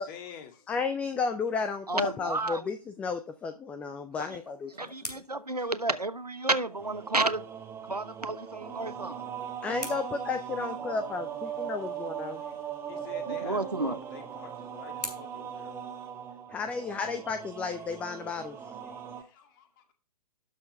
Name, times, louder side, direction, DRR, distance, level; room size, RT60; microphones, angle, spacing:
voice 1, 0.0-0.7 4.6-4.8 6.4-6.5 7.0-7.1 8.0-8.1 8.4-8.8 9.4-9.9 11.4-15.8 17.5-17.9 18.4-19.9, left 8 dB, 35° left, 2.2 m, -50 dB
voice 2, 0.7-4.9 9.6-12.4 16.5-18.6, left 5 dB, 5° left, 0.4 m, -33 dB
voice 3, 1.9-2.7 4.8-7.4 7.9-9.2 13.4-14.0, right 2 dB, 85° right, 1.1 m, -31 dB
sound 1, 4.1-6.6 8.7-11.2 13.4-16.5, equal, 90° left, 3.6 m, -47 dB
sound 2, 6.7-19.2, right 8 dB, 10° right, 1.3 m, -39 dB
12.0 x 4.5 x 5.7 m
figure-of-eight pair, 120°, 20 cm